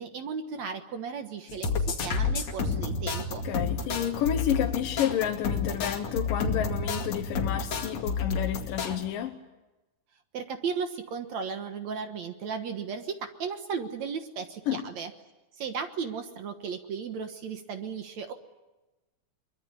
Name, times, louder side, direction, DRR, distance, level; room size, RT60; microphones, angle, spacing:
voice 1, 0.0-3.4 10.3-15.1 15.6-18.3, right 6 dB, 60° right, 7 dB, 2.2 m, -35 dB
sound 1, 1.5-9.0, left 4 dB, 50° left, 3.2 m, -30 dB
voice 2, 3.4-9.4 14.7-14.8, left 10 dB, 70° left, 4 dB, 2.7 m, -30 dB
23.5 x 23.0 x 9.9 m, 1.1 s
omnidirectional pair, 4.3 m